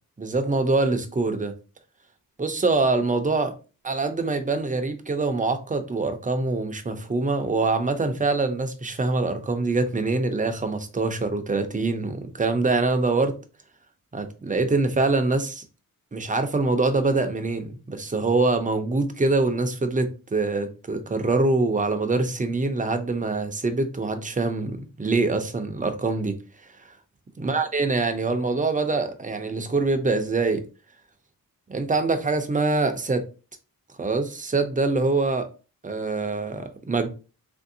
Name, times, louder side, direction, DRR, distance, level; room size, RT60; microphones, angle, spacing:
voice 1, 0.2-1.5 2.4-3.6 3.8-13.4 14.1-15.6 16.1-26.4 27.4-30.6 31.7-33.2 34.0-35.5 35.8-37.1, right 3 dB, 25° right, 0.5 m, -24 dB
3.2 x 2.6 x 2.6 m
wide cardioid pair, 95°, 35 cm